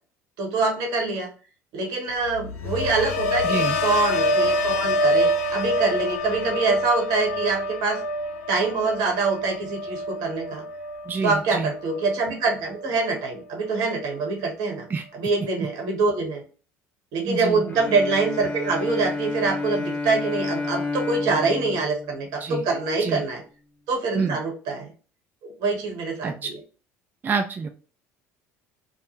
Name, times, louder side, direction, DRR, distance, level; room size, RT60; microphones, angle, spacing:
voice 1, 0.4-1.3 1.7-8.0 8.5-10.6 11.2-14.9 15.1-16.4 17.1-23.4 23.9-24.9 25.4-26.6, right 3 dB, 70° right, 2 dB, 1.1 m, -25 dB
sound 1, 2.2-12.3 12.7-13.1, left 1 dB, 85° left, 0.4 m, -26 dB
voice 2, 3.4-3.8 11.1-11.7 14.9-15.0 17.3-17.6 22.4-22.6 23.0-23.2 24.2-24.4 26.2-26.5 27.2-27.7, right 5 dB, 25° right, 4 dB, 0.3 m, -27 dB
Bowed string instrument, 17.7-23.1, left 3 dB, 20° left, 0.6 m, -31 dB
2.3 x 2.1 x 2.9 m, 0.37 s
hypercardioid pair, 75°, 8 cm